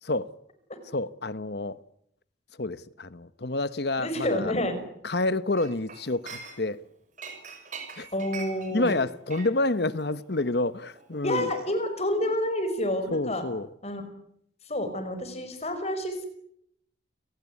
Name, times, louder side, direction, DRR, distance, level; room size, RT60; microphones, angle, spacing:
voice 1, 0.0-0.3 0.8-1.8 2.6-4.5 5.0-6.8 8.0-8.1 8.7-11.5 13.1-13.7, left 2 dB, 60° left, 1.1 m, -28 dB
voice 2, 4.0-4.8 8.1-9.0 11.2-13.4 13.8-14.0 14.7-16.3, left 1 dB, 35° left, 5.4 m, -29 dB
Chink clink, 5.6-6.8 7.2-11.8 12.1-12.3, right 5 dB, 40° right, 6.3 m, -44 dB
29.0 x 18.5 x 9.6 m
head